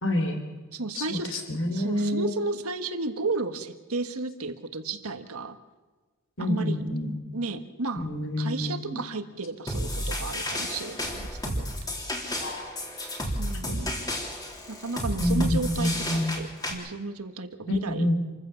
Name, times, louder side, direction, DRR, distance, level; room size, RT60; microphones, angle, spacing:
voice 1, 0.0-0.4 1.0-2.3 6.4-7.1 8.0-9.0 12.4-12.8 13.7-13.8 15.2-16.4 17.7-18.2, left 1 dB, 60° left, 6 dB, 3.6 m, -27 dB
voice 2, 0.7-1.4 1.7-5.6 6.4-6.9 7.3-8.1 8.4-11.9 13.4-13.9 14.7-18.1, right 3 dB, 85° right, 8 dB, 1.6 m, -33 dB
sound 1, 9.7-16.7, equal, 20° left, 3.4 m, -32 dB
27.5 x 15.0 x 7.1 m, 1.3 s
head